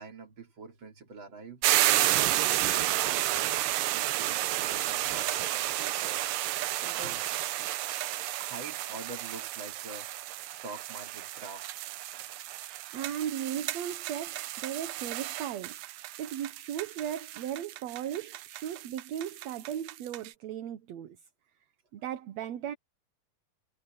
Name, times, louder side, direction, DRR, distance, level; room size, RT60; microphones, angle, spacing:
voice 1, 0.0-1.6 2.1-3.3 3.9-6.2 6.8-7.3 8.3-10.1 10.5-12.0, right 3 dB, 35° right, 3.7 m, -45 dB
sound 1, 1.6-20.3, right 15 dB, 90° right, 2.5 m, -31 dB
voice 2, 12.9-15.8 16.2-21.2 21.9-22.7, right 10 dB, 65° right, 2.0 m, -36 dB
omnidirectional pair, 3.9 m